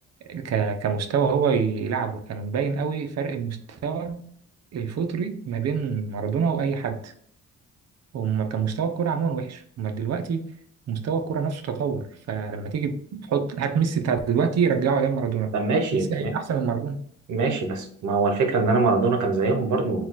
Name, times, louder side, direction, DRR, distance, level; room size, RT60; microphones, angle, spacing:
voice 1, 0.3-4.2 4.7-7.1 8.1-10.5 10.9-15.5 15.9-17.0, right 6 dB, 55° right, 0.7 m, -26 dB
voice 2, 15.5-16.3 17.3-20.1, right 3 dB, 75° right, 1.0 m, -23 dB
4.2 x 2.3 x 4.0 m
cardioid pair, 90°, 30 cm